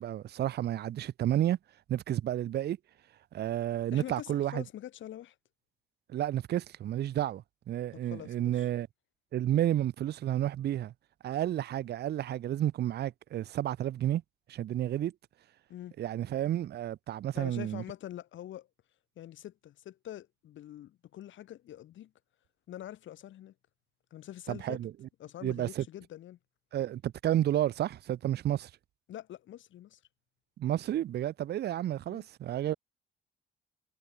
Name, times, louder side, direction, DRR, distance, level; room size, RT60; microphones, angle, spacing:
voice 1, 0.0-1.6 1.9-2.8 3.3-4.6 6.1-8.9 9.3-10.9 11.2-14.2 14.5-15.1 16.0-17.8 24.5-24.9 25.4-25.8 26.7-28.7 30.6-32.7, right 12 dB, 55° right, 0.5 m, -31 dB
voice 2, 3.9-5.4 8.0-8.7 15.7-15.9 17.3-18.7 19.2-22.1 22.7-23.5 24.1-24.8 25.2-26.4 29.1-30.0 32.1-32.3, left 12 dB, 75° left, 1.8 m, -45 dB
cardioid pair, 90°, 20 cm